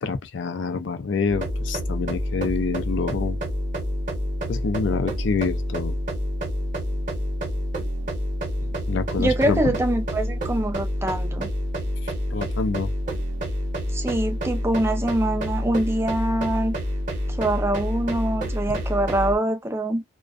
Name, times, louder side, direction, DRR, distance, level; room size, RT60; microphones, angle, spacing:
voice 1, 0.0-3.4 4.5-6.0 8.9-9.7 12.0-12.9, left 4 dB, 65° left, 0.4 m, -27 dB
sound 1, 1.3-19.4, equal, 40° right, 0.9 m, -28 dB
voice 2, 9.2-11.5 13.9-16.7 17.3-20.0, right 1 dB, 15° right, 0.4 m, -24 dB
2.4 x 2.2 x 2.3 m
head